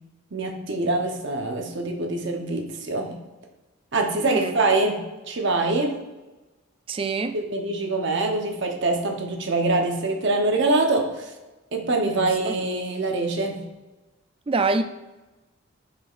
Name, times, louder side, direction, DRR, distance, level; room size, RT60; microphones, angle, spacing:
voice 1, 0.3-3.2 3.9-6.0 7.3-11.3 11.7-13.6, right 2 dB, 60° right, 2 dB, 0.8 m, -24 dB
voice 2, 6.9-7.4 12.1-12.5 14.5-14.8, right 3 dB, 25° right, 8 dB, 0.3 m, -25 dB
8.8 x 4.9 x 2.5 m, 1.1 s
head